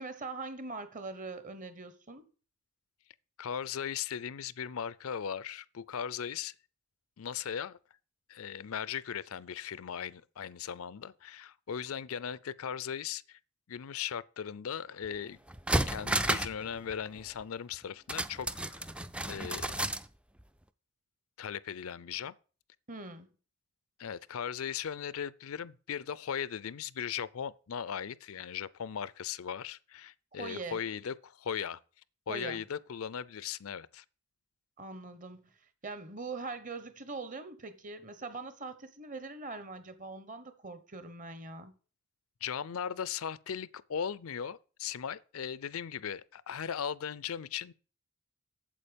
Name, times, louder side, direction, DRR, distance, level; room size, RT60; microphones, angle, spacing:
voice 1, 0.0-2.3 22.9-23.3 30.4-30.8 32.3-32.6 34.8-35.5 35.8-41.7, right 3 dB, 35° right, 1.1 m, -42 dB
voice 2, 3.4-6.5 7.2-7.8 8.3-13.4 13.7-15.4 15.9-18.9 19.3-19.7 21.4-22.3 24.0-31.8 32.3-34.0 42.4-47.7, left 8 dB, 70° left, 0.5 m, -38 dB
sound 1, 15.1-15.2 15.5-16.6 16.9-17.0 18.1-20.1 20.4-20.5, right 1 dB, 5° right, 0.4 m, -32 dB
8.6 x 7.5 x 5.1 m
head